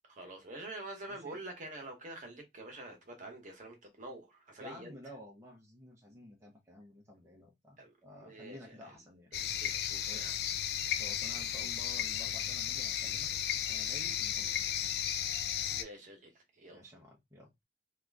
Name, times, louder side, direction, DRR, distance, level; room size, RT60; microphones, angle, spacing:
voice 1, 0.1-4.9 7.8-7.9 8.2-8.9 9.3-10.3 13.8-13.9 15.3-15.4 15.7-16.8, right 2 dB, 45° right, 1.1 m, -47 dB
voice 2, 1.1-1.4 4.6-9.3 10.1-10.3 11.0-13.3 13.7-14.8 16.7-17.6, left 1 dB, 15° right, 0.8 m, -52 dB
sound 1, 9.3-15.8, left 10 dB, 60° left, 0.4 m, -34 dB
2.8 x 2.4 x 3.4 m
head